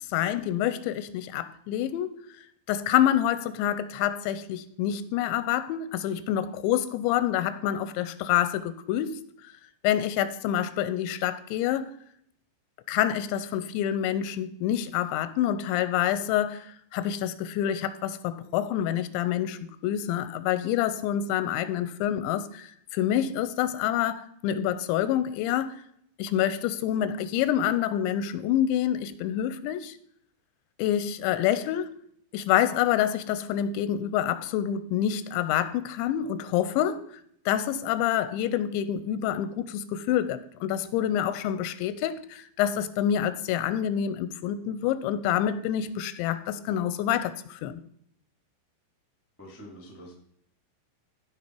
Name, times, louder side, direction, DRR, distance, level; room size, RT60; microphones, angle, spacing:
voice 1, 0.1-2.1 2.7-9.2 9.8-11.9 12.9-25.8 26.2-29.9 30.8-31.9 32.3-37.0 37.5-47.8, left 11 dB, 85° left, 13 dB, 2.9 m, -27 dB
voice 2, 49.4-50.1, equal, 15° left, 1 dB, 0.5 m, -45 dB
14.5 x 5.5 x 4.5 m, 0.68 s
omnidirectional pair, 5.2 m